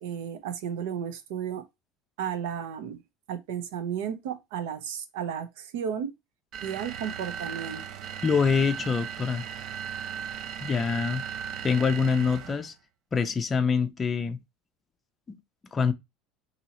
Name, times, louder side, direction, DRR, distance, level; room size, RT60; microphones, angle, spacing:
voice 1, 0.0-1.6 2.2-3.0 3.3-6.1 6.6-7.8, right 8 dB, 90° right, 0.7 m, -33 dB
sound 1, 6.5-12.7, right 8 dB, 55° right, 0.4 m, -37 dB
voice 2, 8.2-9.4 10.6-11.2 11.6-12.7 13.1-14.4 15.3-15.4 15.7-15.9, left 5 dB, 20° left, 0.4 m, -25 dB
2.8 x 2.8 x 4.0 m
cardioid pair, 140°, 0 cm